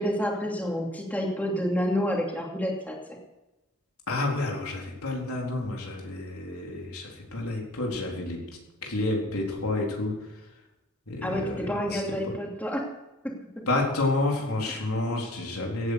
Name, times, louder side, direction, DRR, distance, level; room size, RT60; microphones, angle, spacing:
voice 1, 0.0-3.2 11.2-12.9 13.2-13.6 14.7-14.9, equal, 5° left, -1 dB, 2.7 m, -29 dB
voice 2, 4.1-8.4 8.8-10.1 11.1-12.0 12.3-12.4 13.7-15.9, left 2 dB, 90° left, -1 dB, 4.0 m, -29 dB
16.5 x 9.5 x 6.6 m, 1.0 s
head